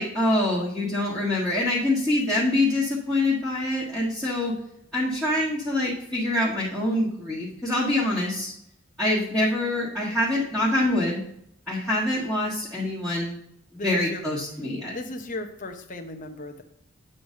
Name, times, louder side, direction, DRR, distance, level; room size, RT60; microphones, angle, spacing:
voice 1, 0.0-4.5 4.9-8.5 9.0-11.2 11.7-13.4 13.7-14.9, left 1 dB, ahead, -11 dB, 1.5 m, -25 dB
voice 2, 13.7-14.2 14.9-16.6, left 2 dB, 35° left, 4 dB, 0.7 m, -36 dB
8.8 x 3.2 x 6.4 m, 0.75 s
head